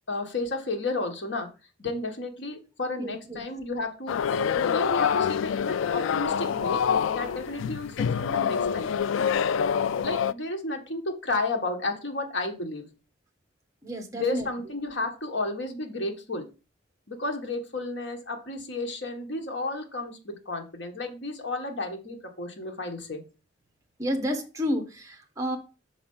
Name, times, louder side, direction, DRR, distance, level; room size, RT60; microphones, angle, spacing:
voice 1, 0.1-1.5 1.8-6.8 7.1-8.9 9.9-12.9 14.1-16.5 17.1-23.2, left 2 dB, 70° left, 3 dB, 1.5 m, -32 dB
voice 2, 3.0-3.4 13.8-14.4 24.0-25.6, equal, 15° right, 4 dB, 1.4 m, -30 dB
sound 1, 4.1-10.3, left 7 dB, 90° left, 0.3 m, -26 dB
6.1 x 4.4 x 5.5 m, 0.32 s
head